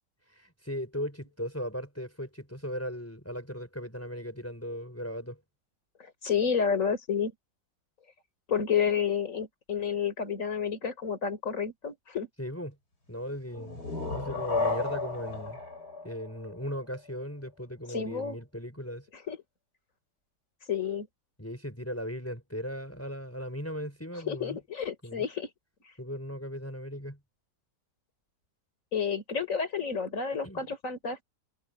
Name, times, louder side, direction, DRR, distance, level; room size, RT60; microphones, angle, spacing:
voice 1, 0.3-5.4 12.4-12.8 13.1-13.8 14.1-15.6 16.0-19.1 21.4-24.6 25.0-25.2 26.0-27.2 30.4-30.6, equal, 10° left, 5.2 m, -37 dB
voice 2, 6.0-7.3 8.5-12.3 17.9-18.4 19.3-19.4 20.7-21.1 24.3-25.5 28.9-31.2, left 7 dB, 50° left, 4.2 m, -30 dB
sound 1, 13.5-17.1, left 3 dB, 80° left, 6.9 m, -33 dB
omnidirectional pair, 1.7 m